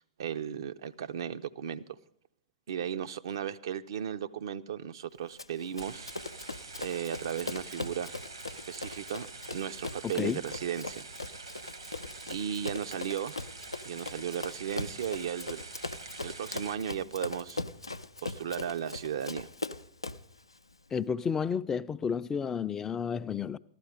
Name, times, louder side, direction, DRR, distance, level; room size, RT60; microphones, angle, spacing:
voice 1, 0.0-2.0 2.7-6.1 6.8-8.2 8.7-11.0 12.3-13.5 13.8-15.6 16.2-17.6 18.2-19.5, right 9 dB, 60° right, 0.5 m, -35 dB
Run, 5.4-20.3, left 2 dB, 85° left, 0.5 m, -40 dB
sound 1, 5.8-16.8, right 3 dB, 80° right, 1.1 m, -46 dB
voice 2, 20.9-23.6, left 6 dB, 20° left, 0.4 m, -31 dB
14.5 x 12.0 x 4.9 m
figure-of-eight pair, 95°, 3 cm